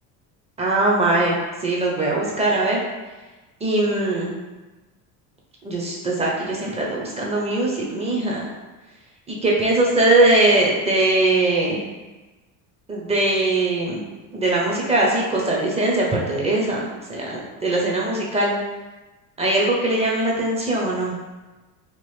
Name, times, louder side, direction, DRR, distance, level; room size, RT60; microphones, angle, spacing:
voice 1, 0.6-1.4 1.6-2.8 3.6-4.3 5.6-8.5 9.3-11.8 12.9-14.0 14.3-18.5 19.4-21.1, right 2 dB, 15° right, -3 dB, 0.6 m, -21 dB
3.0 x 2.4 x 3.2 m, 1.2 s
cardioid pair, 130°, 41 cm